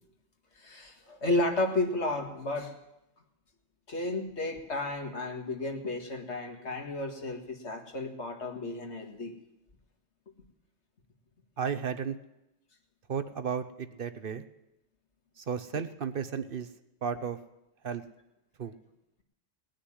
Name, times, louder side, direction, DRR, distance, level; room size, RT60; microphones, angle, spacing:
voice 1, 0.6-2.7 3.9-9.3, left 2 dB, 80° left, 3 dB, 2.2 m, -32 dB
voice 2, 11.6-12.2 13.1-14.4 15.4-16.7 17.0-17.4 17.8-18.0 18.6-18.8, right 7 dB, 55° right, 11 dB, 0.9 m, -33 dB
19.0 x 6.4 x 9.9 m, 0.89 s
omnidirectional pair, 1.1 m